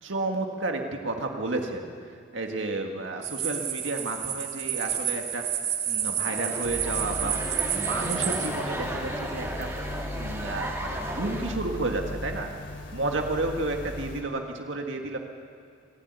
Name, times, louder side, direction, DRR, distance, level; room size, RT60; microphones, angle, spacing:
voice 1, 0.0-5.4 5.9-9.7 10.1-12.5 12.9-15.2, right 2 dB, 90° right, 3 dB, 1.9 m, -31 dB
sound 1, 3.2-8.5, right 9 dB, 60° right, 2.2 m, -30 dB
sound 2, 6.2-11.5, right 1 dB, 15° right, 2.2 m, -35 dB
sound 3, 6.6-14.2, left 1 dB, 75° left, 3.3 m, -38 dB
26.0 x 12.0 x 9.5 m, 2.4 s
head